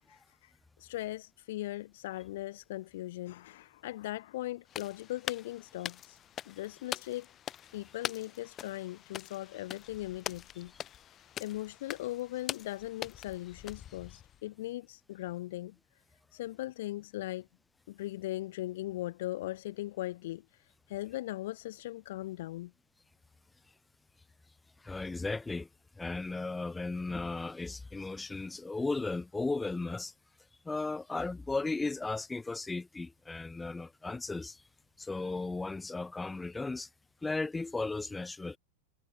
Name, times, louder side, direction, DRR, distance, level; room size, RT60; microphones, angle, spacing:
voice 1, 0.1-0.5 0.8-6.2 6.5-7.3 7.7-10.7 11.4-15.8 16.3-17.5 17.9-20.4 20.9-22.7, left 16 dB, 60° left, 0.5 m, -39 dB
sound 1, 4.7-14.4, left 11 dB, 30° left, 2.0 m, -43 dB
voice 2, 24.8-25.7 26.0-30.1 30.7-34.6 35.0-36.9 37.2-38.6, left 3 dB, 10° left, 1.7 m, -35 dB
figure-of-eight pair, 95°, 0 cm